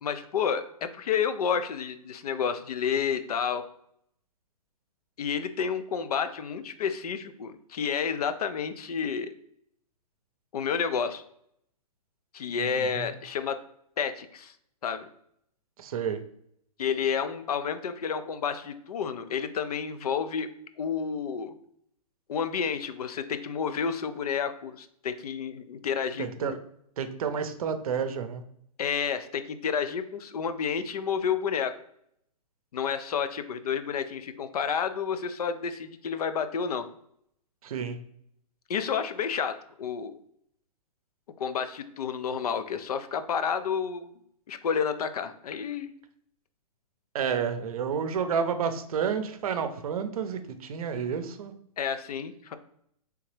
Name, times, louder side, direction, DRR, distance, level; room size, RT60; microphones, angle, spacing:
voice 1, 0.0-3.6 5.2-9.3 10.5-11.2 12.3-13.6 14.0-14.5 14.8-15.1 16.8-20.5 20.8-21.5 22.3-26.6 28.8-31.7 32.7-36.9 38.7-40.1 41.4-44.1 44.5-45.9 51.8-52.6, left 7 dB, 75° left, 10 dB, 0.5 m, -30 dB
voice 2, 12.6-13.1 15.8-16.2 26.2-26.6 27.0-28.4 37.6-38.0 47.1-51.5, right 7 dB, 65° right, 9 dB, 0.6 m, -30 dB
3.4 x 2.8 x 3.1 m, 0.71 s
hypercardioid pair, 140°, 20 cm